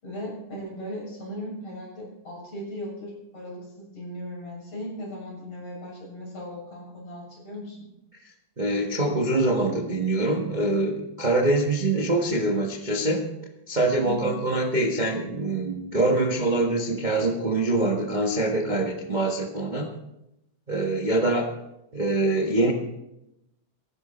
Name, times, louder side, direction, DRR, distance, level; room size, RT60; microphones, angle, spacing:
voice 1, 0.0-7.8 14.0-14.3, left 1 dB, 50° left, -3 dB, 8.1 m, -37 dB
voice 2, 8.6-13.3 13.7-19.9 20.7-21.5 21.9-22.7, right 2 dB, 90° right, 1 dB, 0.4 m, -24 dB
16.5 x 16.0 x 4.3 m, 0.88 s
omnidirectional pair, 3.6 m